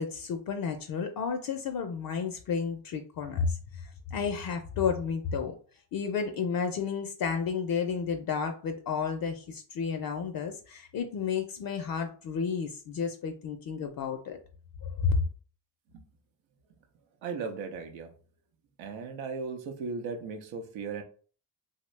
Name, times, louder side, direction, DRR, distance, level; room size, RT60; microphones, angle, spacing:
voice 1, 0.0-5.6 5.9-14.4 14.8-15.2, left 6 dB, 50° left, 6 dB, 0.5 m, -31 dB
voice 2, 17.2-18.1 18.8-21.0, right 5 dB, 85° right, 5 dB, 0.7 m, -37 dB
2.7 x 2.1 x 3.1 m, 0.41 s
supercardioid pair, 65°, 45 cm